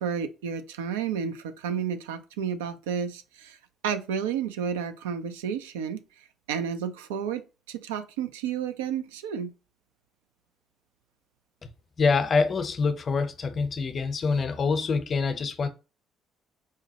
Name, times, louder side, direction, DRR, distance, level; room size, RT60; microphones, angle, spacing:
voice 1, 0.0-3.6 3.8-6.0 6.5-9.5, right 7 dB, 85° right, 0.4 m, -31 dB
voice 2, 12.0-15.7, left 4 dB, 45° left, 0.6 m, -25 dB
4.7 x 2.1 x 2.8 m
hypercardioid pair, 50°, 0 cm